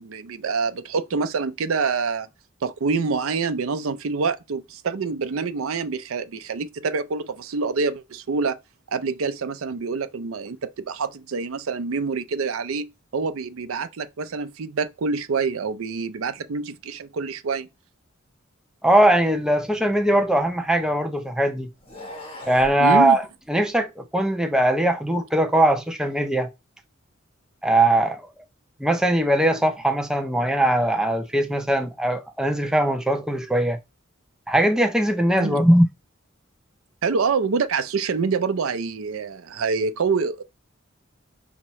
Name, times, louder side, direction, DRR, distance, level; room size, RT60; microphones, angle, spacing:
voice 1, 0.0-2.3 2.6-8.6 8.9-17.7 22.8-23.2 35.4-35.6 37.0-40.4, right 4 dB, 90° right, 0.5 m, -26 dB
voice 2, 18.8-21.7 22.5-23.2 23.5-26.5 27.6-28.3 28.8-33.8 34.5-35.8, right 1 dB, 5° right, 0.6 m, -20 dB
sound 1, 19.6-21.0 21.7-22.8, left 1 dB, 30° left, 1.3 m, -42 dB
5.7 x 2.8 x 3.1 m
head